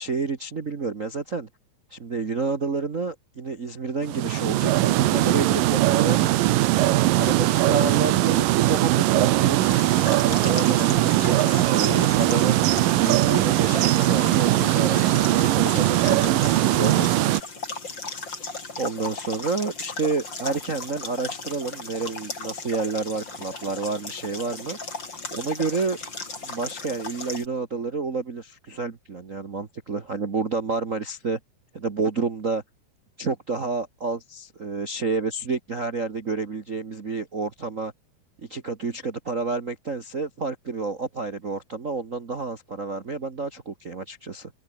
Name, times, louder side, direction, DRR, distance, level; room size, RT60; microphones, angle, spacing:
voice 1, 0.0-1.5 1.9-6.4 7.2-17.2 18.8-24.8 25.3-26.0 26.4-31.4 31.7-32.6 33.2-37.9 38.5-44.5, right 4 dB, 60° right, 0.8 m, -29 dB
sound 1, 4.0-17.4, right 16 dB, 80° right, 2.6 m, -20 dB
sound 2, 9.6-27.5, left 3 dB, 30° left, 5.1 m, -36 dB
open air
omnidirectional pair, 4.0 m